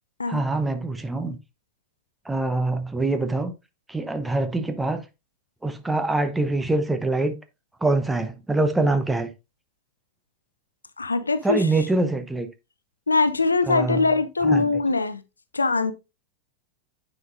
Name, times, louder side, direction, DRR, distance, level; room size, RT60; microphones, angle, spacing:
voice 1, 0.3-1.4 2.3-3.5 3.9-5.0 5.6-7.4 7.8-9.3 11.4-12.5 13.7-14.1 14.4-14.8, right 2 dB, 5° right, 0.7 m, -24 dB
voice 2, 11.0-11.6 13.1-15.2 15.5-15.9, left 3 dB, 80° left, 0.5 m, -22 dB
9.2 x 5.1 x 2.5 m
figure-of-eight pair, 90°, 0 cm